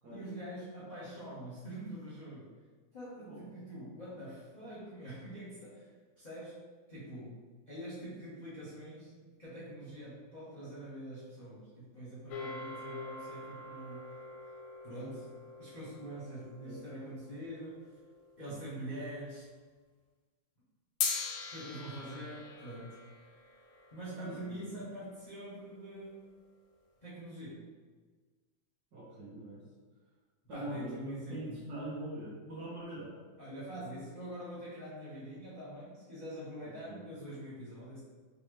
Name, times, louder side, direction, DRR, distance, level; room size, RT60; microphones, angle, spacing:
voice 1, 0.1-2.5 2.9-5.9 6.2-6.6 6.9-9.1 9.4-14.1 14.8-15.3 15.6-17.8 18.4-19.5 21.5-23.0 23.9-26.3 27.0-27.7 30.5-31.6 33.4-38.0, right 1 dB, 40° left, -11 dB, 0.6 m, -44 dB
sound 1, 12.3-18.8 21.0-25.4, left 5 dB, 85° left, 1.4 m, -43 dB
voice 2, 28.9-29.6 30.5-33.2 36.7-37.1, right 1 dB, 60° right, -7 dB, 1.2 m, -43 dB
4.0 x 2.2 x 3.1 m, 1.4 s
omnidirectional pair, 2.3 m